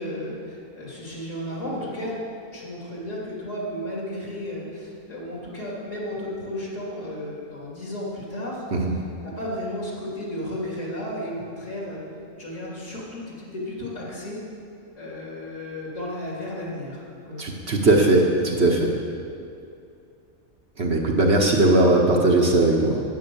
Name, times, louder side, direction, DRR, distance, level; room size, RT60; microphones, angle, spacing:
voice 1, 0.0-2.2 2.5-8.6 9.2-12.0 12.4-14.4 15.0-17.4, left 1 dB, 55° left, -4 dB, 3.2 m, -33 dB
voice 2, 17.4-18.9 20.8-23.0, right 2 dB, 50° right, 0 dB, 1.2 m, -19 dB
9.6 x 9.0 x 7.0 m, 2.5 s
omnidirectional pair, 1.5 m